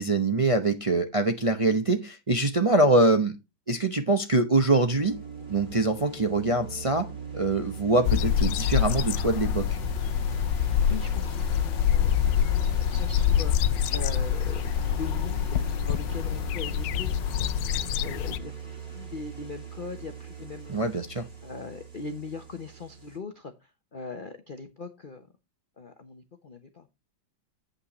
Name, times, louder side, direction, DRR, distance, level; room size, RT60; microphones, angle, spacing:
voice 1, 0.0-3.4 3.7-5.2 5.5-9.8 20.7-21.3, right 2 dB, 45° right, 6 dB, 0.4 m, -24 dB
sound 1, 4.9-23.2, right 6 dB, 25° right, 2.4 m, -39 dB
sound 2, 8.0-18.4, left 10 dB, 75° left, 1.2 m, -26 dB
voice 2, 10.8-17.1 17.7-18.5 18.8-20.9 21.4-25.3 25.8-26.9, left 4 dB, 40° left, 7 dB, 0.8 m, -40 dB
8.5 x 8.5 x 3.1 m, 0.24 s
omnidirectional pair, 2.1 m